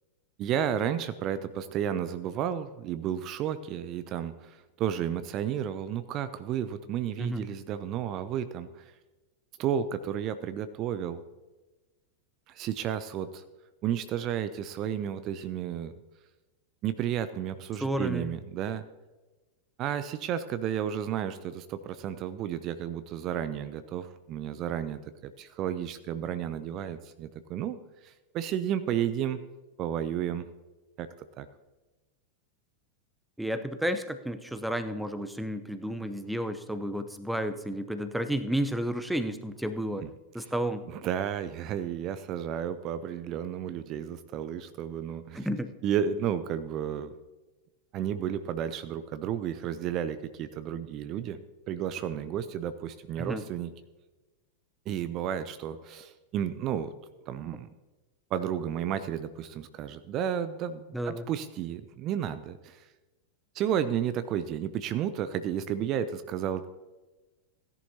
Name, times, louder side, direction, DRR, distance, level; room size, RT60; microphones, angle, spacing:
voice 1, 0.4-8.9 9.6-11.2 12.5-13.4 13.8-15.9 16.8-18.8 19.8-29.4 29.8-30.5 31.0-31.1 31.4-31.5 40.0-40.1 40.4-40.5 40.9-45.5 45.8-47.1 47.9-51.4 51.7-53.7 54.9-56.9 57.3-57.7 58.3-62.9 63.5-66.7, right 9 dB, 35° right, 12 dB, 0.5 m, -32 dB
voice 2, 17.8-18.3 33.4-40.1 40.3-40.8 45.4-45.7 53.2-53.4 60.9-61.3, right 1 dB, 5° right, 10 dB, 0.7 m, -31 dB
16.5 x 11.0 x 2.8 m, 1.2 s
figure-of-eight pair, 90°, 0 cm